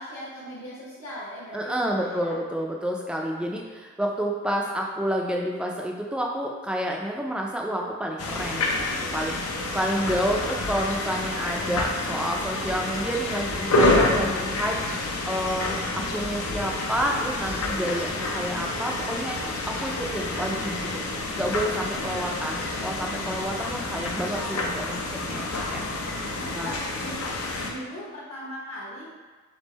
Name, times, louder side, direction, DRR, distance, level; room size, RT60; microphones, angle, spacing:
voice 1, 0.0-2.4 10.4-10.5 22.0-22.2 26.0-29.1, equal, 70° left, -10 dB, 1.0 m, -40 dB
voice 2, 1.5-14.8 15.3-20.7 21.1-25.8 26.5-26.7, equal, 5° right, -1 dB, 0.3 m, -29 dB
sound 1, 8.2-27.7, left 2 dB, 90° left, 0.6 m, -28 dB
3.6 x 3.5 x 4.0 m, 1.4 s
head